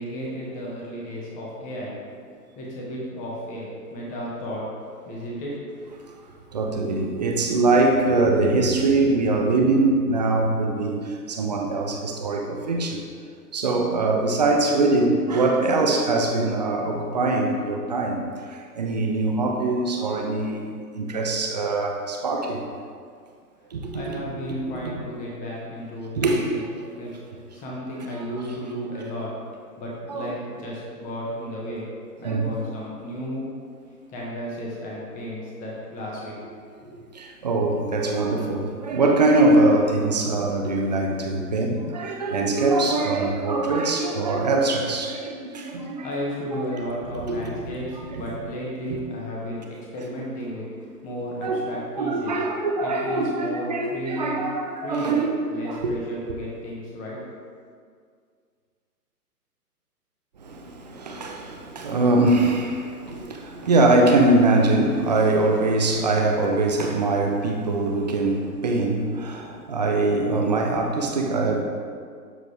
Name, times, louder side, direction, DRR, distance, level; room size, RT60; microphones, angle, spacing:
voice 1, 0.0-2.0 2.5-4.7 5.0-5.5 6.0-6.1 23.9-26.6 27.0-27.2 27.5-29.3 29.8-31.9 32.2-33.5 34.1-36.5 36.8-37.0 46.0-50.7 51.0-52.4 52.8-54.5 54.8-55.2 55.5-57.2, equal, 15° left, -4 dB, 1.4 m, -33 dB
voice 2, 6.5-13.0 13.5-22.6 23.7-24.2 26.2-26.7 30.1-30.3 32.2-32.5 37.1-46.1 46.6-46.7 47.2-47.7 48.1-48.2 51.4-51.6 52.0-55.3 55.7-55.9 60.4-71.6, right 2 dB, 30° right, 2 dB, 0.5 m, -22 dB
12.0 x 4.0 x 3.3 m, 2.1 s
figure-of-eight pair, 130°, 48 cm